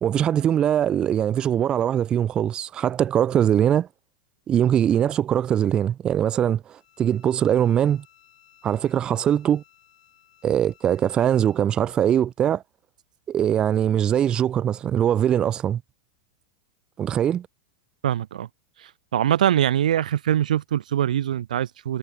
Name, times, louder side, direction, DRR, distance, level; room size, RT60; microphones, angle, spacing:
voice 1, 0.0-3.9 4.5-8.0 8.6-9.6 10.4-12.6 13.3-15.8 17.0-17.5, right 10 dB, 20° right, 0.3 m, -22 dB
Bowed string instrument, 6.8-11.7, left 11 dB, 80° left, 6.1 m, -58 dB
voice 2, 18.0-18.5 19.1-22.0, right 11 dB, 90° right, 0.5 m, -23 dB
supercardioid pair, 145°, 4 cm